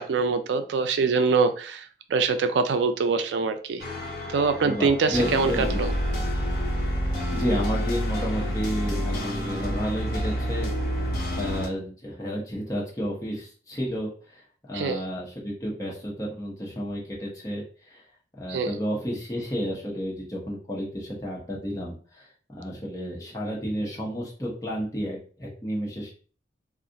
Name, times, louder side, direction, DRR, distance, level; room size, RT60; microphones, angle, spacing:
voice 1, 0.0-3.8 4.3-5.9 14.7-15.0 18.5-18.7, right 4 dB, 80° right, 8 dB, 0.4 m, -24 dB
sound 1, 3.8-11.7, equal, 60° left, 1.1 m, -28 dB
voice 2, 4.6-5.8 7.3-10.7 11.3-14.4 14.7-18.0 18.4-26.1, equal, 20° left, -4 dB, 0.9 m, -31 dB
2.4 x 2.4 x 3.8 m, 0.41 s
head